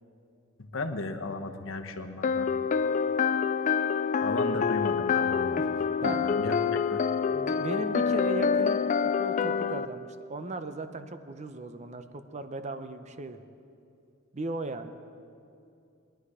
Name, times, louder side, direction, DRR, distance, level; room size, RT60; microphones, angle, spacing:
voice 1, 0.6-2.5 4.2-5.6 6.0-6.6 6.9-7.0, left 2 dB, 65° left, 5 dB, 1.0 m, -35 dB
sound 1, 2.2-9.9, left 6 dB, 35° left, 0.3 m, -26 dB
voice 2, 5.6-6.2 7.3-8.8 9.2-13.4 14.3-15.0, right 2 dB, 35° right, 9 dB, 0.7 m, -37 dB
21.5 x 10.5 x 4.9 m, 2.6 s
head